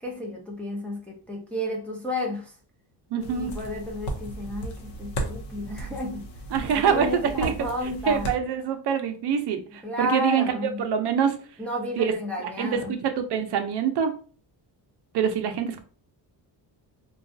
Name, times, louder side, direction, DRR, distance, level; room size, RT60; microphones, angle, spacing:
voice 1, 0.0-2.5 3.1-6.3 6.7-8.3 9.8-10.8 11.6-12.9, left 1 dB, 5° left, -3 dB, 0.5 m, -32 dB
voice 2, 3.1-3.5 6.5-7.1 7.4-7.5 8.1-10.5 10.8-11.4 12.0-12.1 12.6-14.1 15.1-15.8, right 7 dB, 70° right, 6 dB, 0.6 m, -25 dB
sound 1, 3.2-8.4, right 1 dB, 70° left, 0.8 m, -35 dB
3.9 x 2.3 x 2.6 m, 0.40 s
cardioid pair, 165°, 42 cm